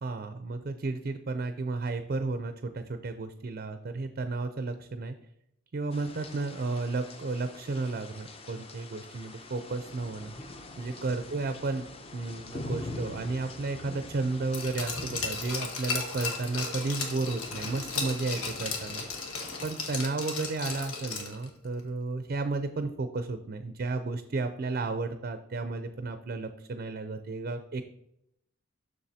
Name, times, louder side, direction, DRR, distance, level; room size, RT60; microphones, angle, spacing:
voice 1, 0.0-5.1 5.7-10.3 10.8-11.9 12.1-19.0 19.6-27.8, right 3 dB, 45° right, 8 dB, 0.4 m, -33 dB
sound 1, 5.9-19.7, left 2 dB, 25° left, 0.5 m, -44 dB
Glass, 14.5-21.5 21.8-21.9, left 4 dB, 90° left, 1.4 m, -35 dB
7.2 x 6.4 x 2.7 m, 0.79 s
head